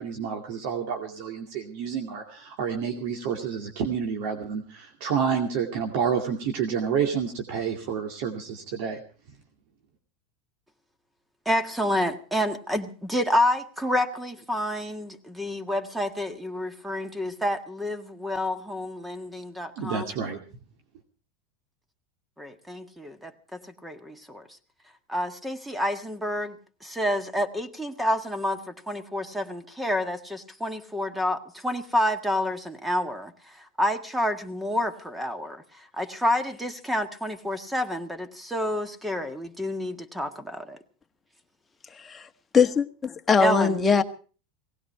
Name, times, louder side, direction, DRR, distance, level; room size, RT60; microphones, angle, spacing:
voice 1, 0.0-9.0 19.8-20.4, right 7 dB, 65° right, 3 dB, 2.4 m, -29 dB
voice 2, 11.5-20.1 22.4-24.4 25.1-40.8 43.4-43.8, left 1 dB, 5° right, 9 dB, 1.7 m, -29 dB
voice 3, 42.0-42.3 42.5-44.0, left 5 dB, 20° left, 6 dB, 1.4 m, -21 dB
18.5 x 16.5 x 4.6 m, 0.40 s
supercardioid pair, 125°, 0 cm